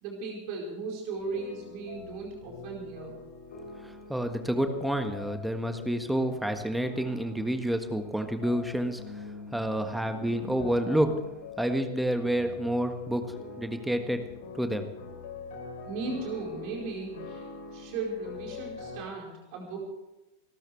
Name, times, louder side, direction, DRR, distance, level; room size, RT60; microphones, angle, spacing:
voice 1, 0.0-3.2 15.9-17.4 17.7-19.9, right 3 dB, 45° right, -1 dB, 4.7 m, -36 dB
sound 1, 1.1-19.0, left 3 dB, 55° left, 4.0 m, -44 dB
voice 2, 3.8-14.2 14.5-14.9, right 1 dB, 5° right, 7 dB, 1.6 m, -29 dB
27.5 x 13.0 x 3.4 m, 0.98 s
figure-of-eight pair, 90°, 0 cm